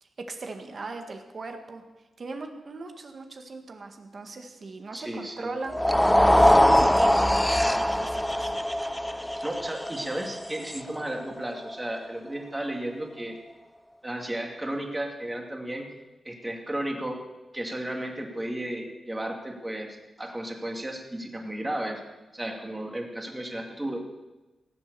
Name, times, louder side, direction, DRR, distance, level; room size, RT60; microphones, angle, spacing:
voice 1, 0.0-1.8 2.2-5.7 6.2-8.5, right 3 dB, 50° right, 5 dB, 1.8 m, -39 dB
voice 2, 4.9-5.5 6.2-6.4 9.4-13.4 14.0-15.9 16.2-17.2 17.5-22.0 22.3-24.0, right 1 dB, 15° right, 2 dB, 2.5 m, -34 dB
sound 1, 5.7-12.0, equal, 5° left, 0.4 m, -22 dB
17.5 x 7.9 x 6.9 m, 1.1 s
cardioid pair, 85°, 0 cm